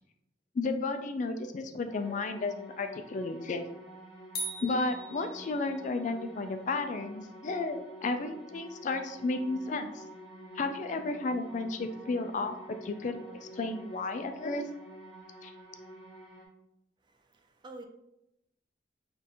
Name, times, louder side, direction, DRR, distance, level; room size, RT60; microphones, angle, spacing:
voice 1, 0.5-3.6 4.6-10.0 10.5-13.2 13.5-14.7 15.4-15.5, left 3 dB, 45° left, 8 dB, 0.3 m, -33 dB
sound 1, 1.9-16.5, right 1 dB, ahead, 1.4 m, -49 dB
sound 2, 4.4-5.9, right 1 dB, 65° left, 0.8 m, -40 dB
voice 2, 17.0-17.8, right 2 dB, 25° right, 5 dB, 0.4 m, -49 dB
3.6 x 2.6 x 4.2 m, 0.86 s
head